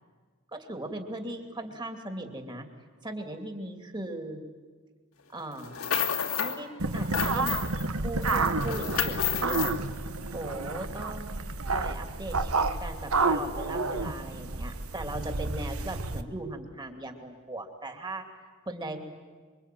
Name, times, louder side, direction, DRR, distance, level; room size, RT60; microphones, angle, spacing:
voice 1, 0.5-2.7 3.0-4.4 5.3-5.8 6.4-7.7 7.9-9.7 10.3-11.4 11.7-18.2 18.7-19.1, right 1 dB, 20° right, 5 dB, 2.9 m, -38 dB
sound 1, 5.6-6.6 6.9-7.8 8.2-9.8, left 8 dB, 85° left, 2.6 m, -31 dB
sound 2, 6.8-16.2, right 3 dB, 80° right, 1.4 m, -30 dB
27.0 x 23.5 x 9.4 m, 1.5 s
head